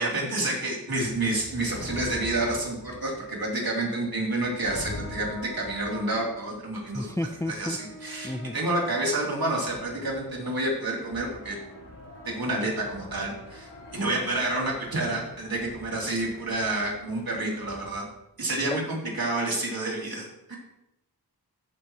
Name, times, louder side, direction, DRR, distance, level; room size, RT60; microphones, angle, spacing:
voice 1, 0.0-7.1 7.5-11.6 12.2-18.1 18.4-20.6, right 2 dB, 65° right, -2 dB, 3.1 m, -29 dB
sound 1, 1.0-18.0, left 1 dB, 85° left, 2.8 m, -44 dB
voice 2, 6.9-7.8 8.2-8.5 18.6-18.8, left 1 dB, 10° left, 7 dB, 0.4 m, -31 dB
14.5 x 7.7 x 3.0 m, 0.87 s
wide cardioid pair, 80°, 40 cm